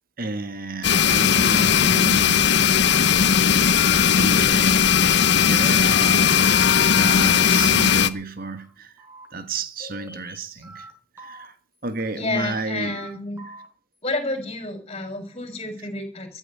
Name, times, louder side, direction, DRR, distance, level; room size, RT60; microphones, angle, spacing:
voice 1, 0.2-2.7 3.9-4.8 5.2-8.9 9.3-10.8 11.1-11.5 11.8-13.0, right 3 dB, 50° right, 1.6 m, -32 dB
sound 1, 0.8-8.1, left 7 dB, 65° left, 0.9 m, -18 dB
sound 2, 8.4-8.7 9.0-9.3 9.8-10.9 11.2-11.5 12.0-13.1 13.4-13.7, left 1 dB, 15° right, 4.9 m, -44 dB
voice 2, 12.1-13.4 14.0-16.4, left 2 dB, 35° left, 5.6 m, -30 dB
14.5 x 8.1 x 9.7 m
head